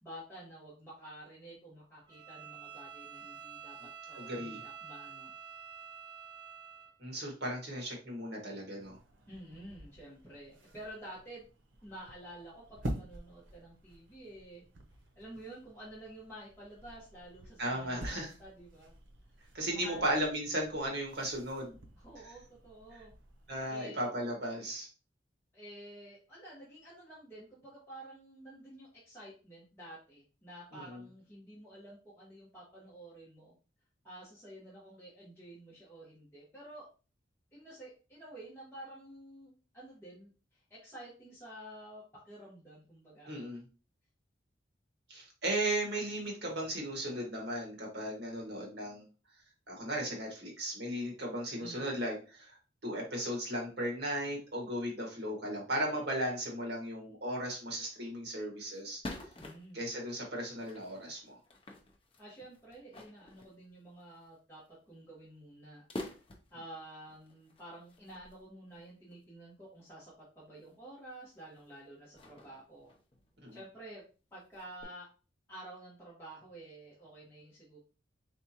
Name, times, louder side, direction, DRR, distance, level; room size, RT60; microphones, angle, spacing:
voice 1, 0.0-5.3 9.3-11.5 11.8-14.6 15.1-18.9 19.7-20.1 22.0-23.1 23.7-24.0 25.5-33.5 34.0-36.9 37.5-43.3 51.6-51.9 59.3-59.9 62.2-65.8 66.5-72.9 73.5-74.0 74.3-75.1 75.5-77.8, right 1 dB, 15° left, -8 dB, 1.3 m, -50 dB
Bowed string instrument, 2.1-7.0, right 7 dB, 25° right, 0.5 m, -48 dB
voice 2, 4.2-4.6 7.0-9.0 17.6-18.3 19.5-21.8 23.5-24.9 30.7-31.0 43.3-43.6 45.1-49.0 49.7-52.6 52.8-59.0 59.7-61.4 73.4-73.6, right 1 dB, 60° right, -1 dB, 1.5 m, -36 dB
sound 1, 8.8-23.7, right 1 dB, 85° right, 0.8 m, -48 dB
sound 2, 57.6-57.7 58.1-58.2 58.7-60.0 60.5-64.3 64.7-64.9 65.2-65.3 65.9-66.7 67.1-69.2 69.9-70.0 70.6-70.8 71.2-71.6 72.1-73.7 74.0-74.1 74.3-74.8, left 1 dB, 30° left, 0.6 m, -48 dB
4.1 x 3.5 x 2.8 m, 0.34 s
head